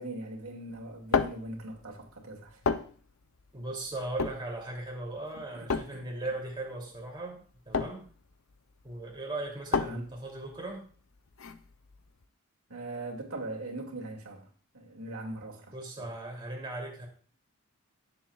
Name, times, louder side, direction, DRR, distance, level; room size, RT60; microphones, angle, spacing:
voice 1, 0.0-2.6 5.5-6.0 9.8-10.0 12.7-14.5 14.7-15.7 16.0-16.1, right 2 dB, 80° right, 2.3 m, -40 dB
sound 1, 0.7-12.2, left 5 dB, 65° left, 0.6 m, -34 dB
voice 2, 3.5-8.0 8.8-10.9 15.7-17.1, right 2 dB, 20° right, 2.8 m, -38 dB
16.5 x 7.6 x 2.4 m
head